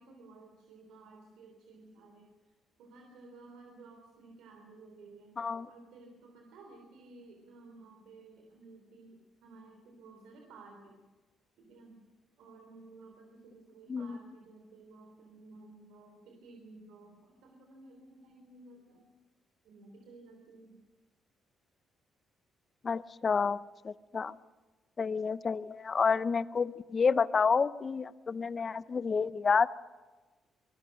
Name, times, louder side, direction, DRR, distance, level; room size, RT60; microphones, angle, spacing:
voice 1, 0.0-11.0 11.6-12.0 12.4-19.2 19.6-20.8, right 3 dB, 90° right, 3 dB, 3.4 m, -55 dB
voice 2, 5.4-5.7 13.9-14.2 22.8-24.4 25.0-29.7, left 5 dB, 40° left, 16 dB, 0.7 m, -29 dB
25.0 x 21.0 x 6.5 m, 1.3 s
cardioid pair, 90°, 0 cm